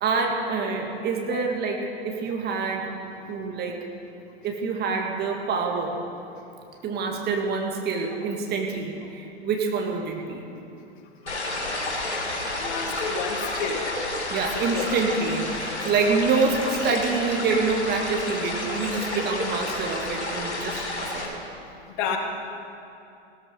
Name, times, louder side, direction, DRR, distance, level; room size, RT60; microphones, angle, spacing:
voice 1, 0.0-2.9 3.3-3.8 4.4-6.0 6.8-10.5 14.3-21.4 22.1-22.2, right 4 dB, 30° right, 2 dB, 2.1 m, -26 dB
sound 1, 11.3-21.3, left 2 dB, 90° left, 3.1 m, -30 dB
voice 2, 12.6-13.9 14.7-14.9 22.0-22.2, left 6 dB, 45° left, 3 dB, 2.1 m, -30 dB
16.5 x 13.5 x 5.6 m, 2.7 s
figure-of-eight pair, 100°, 33 cm